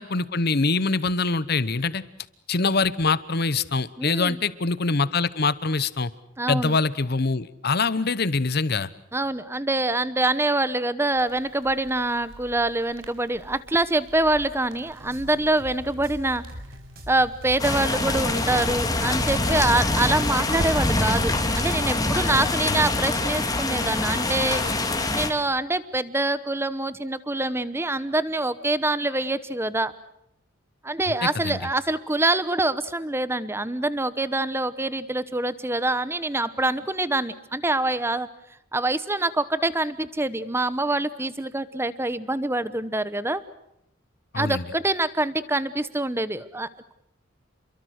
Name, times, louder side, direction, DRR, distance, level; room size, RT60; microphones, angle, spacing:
voice 1, 0.0-2.0 2.5-6.1 6.5-8.9 22.6-22.9 31.4-31.6 44.3-44.6, left 4 dB, 55° left, 16 dB, 1.0 m, -24 dB
voice 2, 4.0-4.4 6.4-6.7 9.1-16.4 17.1-24.6 25.1-29.9 30.8-38.3 38.7-43.4 44.3-46.9, right 2 dB, 10° right, 15 dB, 1.0 m, -25 dB
Crackle, 11.1-20.7, equal, 80° right, 4.4 m, -44 dB
sound 1, 15.0-22.2, equal, 50° right, 5.5 m, -42 dB
sound 2, 17.6-25.3, left 2 dB, 20° left, 2.3 m, -25 dB
29.5 x 23.0 x 6.5 m, 0.81 s
head